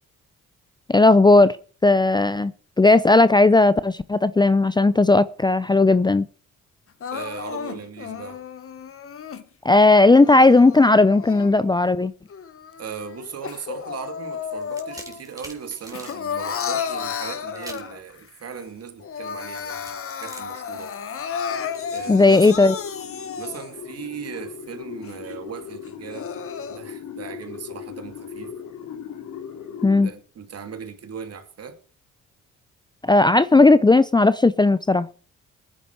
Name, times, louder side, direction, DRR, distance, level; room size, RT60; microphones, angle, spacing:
voice 1, 0.9-1.6 1.8-2.5 2.8-6.3 9.6-12.1 22.1-22.7 29.8-30.1 33.0-35.1, left 2 dB, 15° left, 0.6 m, -16 dB
Crying sobbing, 7.0-9.4 10.1-11.8 12.3-15.2 15.5-18.2 18.6-18.7 19.0-23.8 24.4-24.5 25.0-25.1 25.9-26.8, left 7 dB, 50° left, 1.4 m, -33 dB
voice 2, 7.1-8.4 12.8-20.9 21.9-22.7 23.4-26.3 26.7-28.5 30.0-31.8, right 6 dB, 55° right, 2.6 m, -38 dB
sound 1, 14.5-16.2 17.6-18.0 19.8-22.9, right 2 dB, 10° right, 4.1 m, -45 dB
sound 2, 21.5-30.1, left 7 dB, 75° left, 2.7 m, -38 dB
19.5 x 10.0 x 4.8 m
cardioid pair, 90°, 30 cm